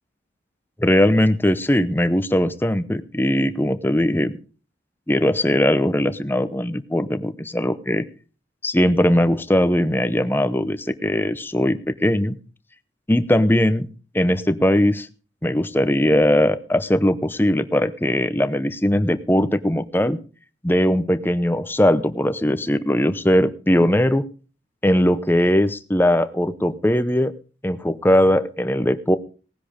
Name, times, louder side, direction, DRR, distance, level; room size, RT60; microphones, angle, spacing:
voice 1, 0.8-4.3 5.1-8.1 8.6-12.3 13.1-13.9 14.1-15.1 15.4-20.2 20.6-24.2 24.8-27.3 27.6-29.2, left 1 dB, 10° left, 12 dB, 0.7 m, -20 dB
18.5 x 10.0 x 5.2 m, 0.38 s
head